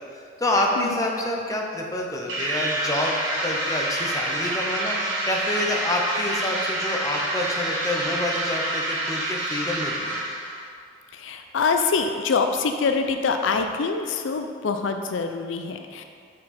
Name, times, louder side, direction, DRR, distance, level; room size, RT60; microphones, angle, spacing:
voice 1, 0.0-10.2, left 1 dB, 20° left, -1 dB, 0.6 m, -28 dB
sound 1, 2.3-10.6, right 1 dB, 80° right, 1.2 m, -27 dB
voice 2, 11.1-16.0, left 4 dB, 80° left, 6 dB, 0.4 m, -25 dB
6.3 x 4.6 x 4.2 m, 2.2 s
head